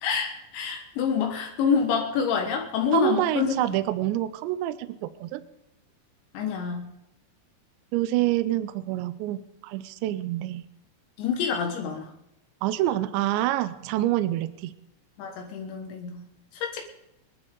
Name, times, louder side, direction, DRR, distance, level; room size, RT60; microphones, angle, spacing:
voice 1, 0.0-3.6 6.4-6.9 11.2-12.1 15.2-16.2 16.6-16.8, left 6 dB, 75° left, 2 dB, 3.6 m, -27 dB
voice 2, 2.9-5.4 7.9-10.6 12.6-14.7, right 14 dB, 80° right, 13 dB, 2.8 m, -27 dB
24.0 x 12.0 x 3.8 m, 0.89 s
omnidirectional pair, 5.3 m